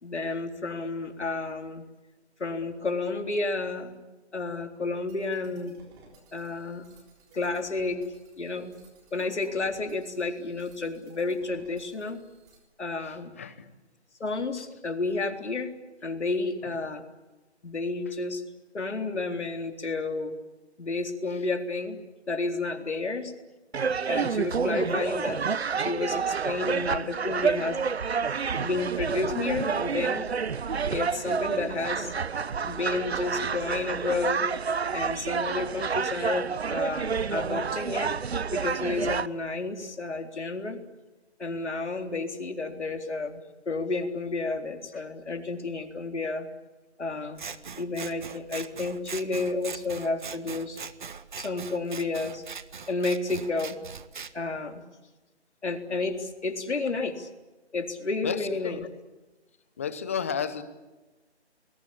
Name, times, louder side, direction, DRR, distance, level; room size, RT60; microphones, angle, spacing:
voice 1, 0.0-1.8 2.4-4.0 4.3-5.7 6.3-6.8 7.3-8.0 8.4-8.7 9.1-12.2 12.8-13.3 14.2-15.7 16.0-17.0 17.6-18.4 18.7-20.4 20.8-22.0 22.3-23.3 24.1-25.4 25.8-27.8 28.6-30.3 30.9-32.1 32.7-34.5 34.9-38.1 38.5-40.8 41.4-46.5 47.0-47.4 47.8-50.8 51.4-52.4 52.9-53.8 54.3-54.8 55.6-57.3 57.7-58.9, left 3 dB, 80° left, 5 dB, 3.9 m, -31 dB
sound 1, 5.1-12.6, right 2 dB, 10° right, 3.6 m, -56 dB
voice 2, 13.4-13.7 58.2-58.8 59.8-60.6, left 7 dB, 15° left, 13 dB, 0.8 m, -32 dB
sound 2, 23.7-39.3, right 6 dB, 65° right, 1.1 m, -29 dB
Scissors, 47.4-54.3, right 6 dB, 45° right, 1.3 m, -41 dB
29.5 x 21.0 x 8.7 m, 1.2 s
hypercardioid pair, 165°, 34 cm